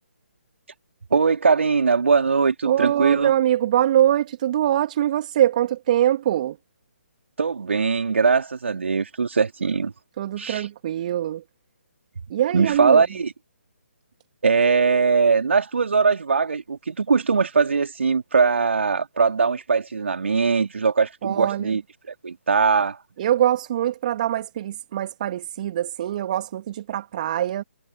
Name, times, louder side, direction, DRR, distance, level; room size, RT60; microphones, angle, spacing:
voice 1, 1.1-3.3 7.4-9.9 10.4-10.7 12.5-13.3 14.4-21.8 22.1-23.0, right 5 dB, 60° right, 4.3 m, -21 dB
voice 2, 2.6-6.6 10.2-11.4 12.3-13.0 21.2-21.8 23.2-27.6, right 11 dB, 35° right, 3.0 m, -23 dB
figure-of-eight pair, 140°, 7 cm